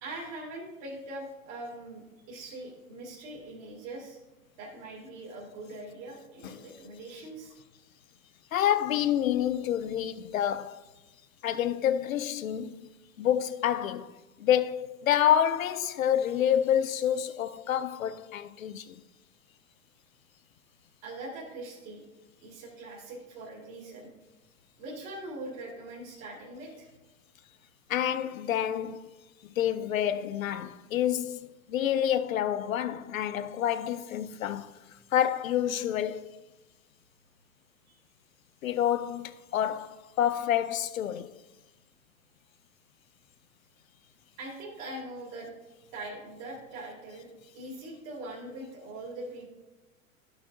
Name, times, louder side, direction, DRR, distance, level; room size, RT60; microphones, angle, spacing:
voice 1, 0.0-4.2 4.6-7.5 21.0-22.0 22.4-24.1 24.8-26.9 37.9-38.0 44.4-45.5 45.9-49.5, right 2 dB, 45° right, 2.2 m, -42 dB
voice 2, 8.5-10.8 11.4-12.9 13.2-19.0 27.9-29.1 29.4-34.8 35.1-36.3 38.6-41.3, left 10 dB, 70° left, 0.6 m, -28 dB
13.0 x 6.0 x 2.6 m
figure-of-eight pair, 95°, 42 cm